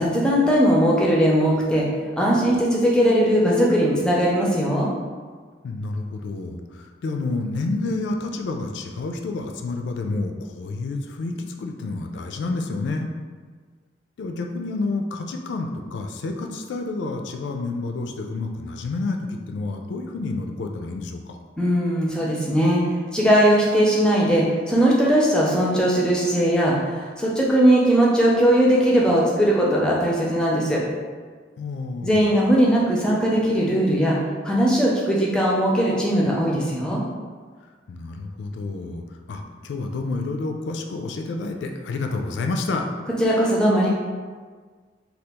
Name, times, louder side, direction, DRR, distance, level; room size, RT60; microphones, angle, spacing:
voice 1, 0.0-1.9 2.2-4.9 21.6-30.8 32.0-34.2 34.4-37.0 43.2-43.9, equal, 5° left, -4 dB, 0.4 m, -19 dB
voice 2, 5.6-13.1 14.2-21.4 31.6-32.4 37.9-42.8, left 3 dB, 75° left, 3 dB, 0.3 m, -29 dB
2.8 x 2.3 x 3.4 m, 1.5 s
head